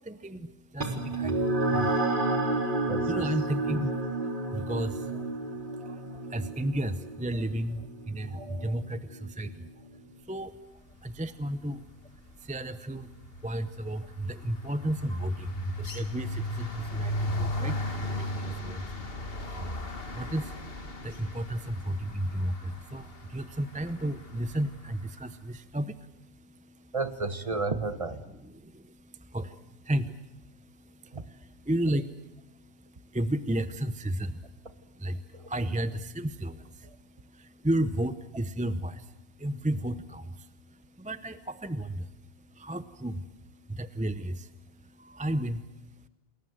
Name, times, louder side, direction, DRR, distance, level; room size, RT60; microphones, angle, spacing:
voice 1, 0.0-27.0 28.3-46.1, right 1 dB, 10° right, 12 dB, 0.7 m, -34 dB
sound 1, 0.8-9.6, right 2 dB, 50° right, 3.6 m, -31 dB
voice 2, 2.6-3.2 5.8-6.0 8.3-8.8 26.9-28.2 31.1-31.2 35.4-35.5, right 3 dB, 30° right, 11 dB, 1.3 m, -33 dB
sound 2, 11.2-11.5 11.8-25.0, left 1 dB, 60° left, 2.2 m, -37 dB
28.5 x 21.0 x 7.8 m, 0.97 s
omnidirectional pair, 1.1 m